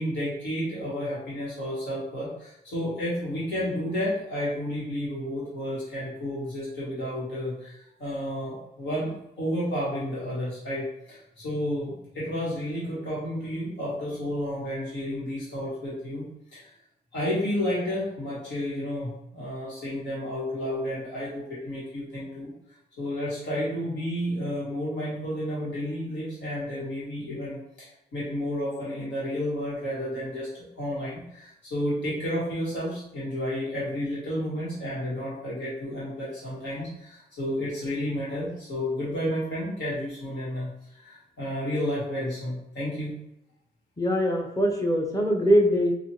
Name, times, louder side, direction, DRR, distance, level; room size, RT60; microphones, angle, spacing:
voice 1, 0.0-16.2 16.5-16.7 17.1-22.5 23.0-43.1, equal, 80° left, -8 dB, 1.4 m, -31 dB
voice 2, 44.0-45.9, equal, 20° left, 2 dB, 0.8 m, -22 dB
4.3 x 2.4 x 3.0 m, 0.82 s
cardioid pair, 75°, 18 cm